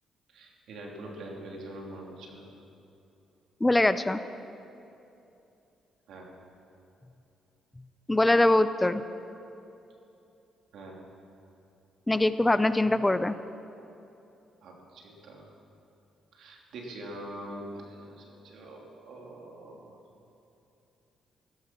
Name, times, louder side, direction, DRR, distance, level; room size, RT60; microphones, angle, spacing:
voice 1, 0.3-2.4 6.1-6.3 10.7-11.0 14.6-15.5 16.3-20.0, right 1 dB, 75° right, 0 dB, 2.9 m, -44 dB
voice 2, 3.6-4.2 8.1-9.0 12.1-13.4, left 2 dB, 15° left, 12 dB, 0.5 m, -23 dB
15.0 x 14.5 x 6.0 m, 2.8 s
cardioid pair, 90°, 0 cm